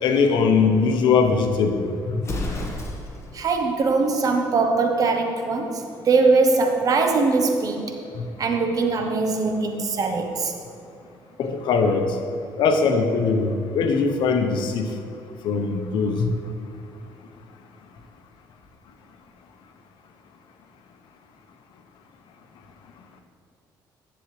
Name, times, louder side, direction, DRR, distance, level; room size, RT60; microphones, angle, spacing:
voice 1, 0.0-2.2 11.4-12.1 12.6-14.9 15.4-16.3, left 5 dB, 75° left, 6 dB, 0.8 m, -21 dB
Explosion, 2.2-3.3, left 2 dB, 35° left, 1.2 m, -30 dB
voice 2, 3.3-8.0 8.4-10.5, right 3 dB, 45° right, 4 dB, 0.9 m, -21 dB
10.5 x 7.1 x 3.2 m, 2.3 s
cardioid pair, 105°, 8 cm